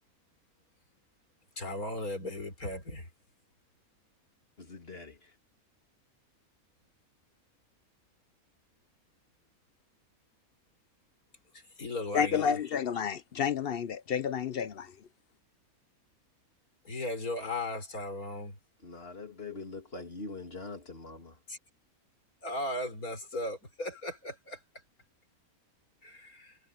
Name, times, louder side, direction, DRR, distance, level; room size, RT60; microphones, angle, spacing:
voice 1, 1.6-3.1 11.5-12.6 16.8-18.6 21.5-21.6 22.4-24.6 26.0-26.6, left 1 dB, 80° left, 4.8 m, -37 dB
voice 2, 4.6-5.3 18.8-21.4, left 3 dB, 40° left, 2.9 m, -43 dB
voice 3, 12.1-14.9, left 7 dB, 60° left, 0.6 m, -30 dB
omnidirectional pair, 1.5 m